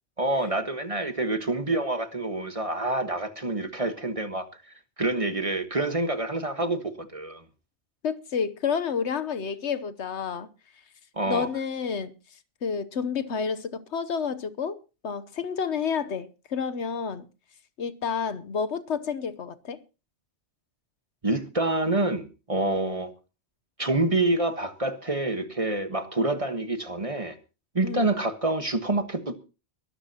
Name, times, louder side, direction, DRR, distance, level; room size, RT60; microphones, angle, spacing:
voice 1, 0.2-4.5 5.0-7.4 11.2-11.5 21.2-23.1 23.8-27.4 27.7-29.4, right 2 dB, 30° right, 1.4 m, -27 dB
voice 2, 8.0-10.5 11.3-12.1 12.6-14.8 15.0-17.2 17.8-19.8 27.8-28.2, left 6 dB, 70° left, 1.2 m, -30 dB
22.5 x 13.0 x 2.9 m
omnidirectional pair, 1.2 m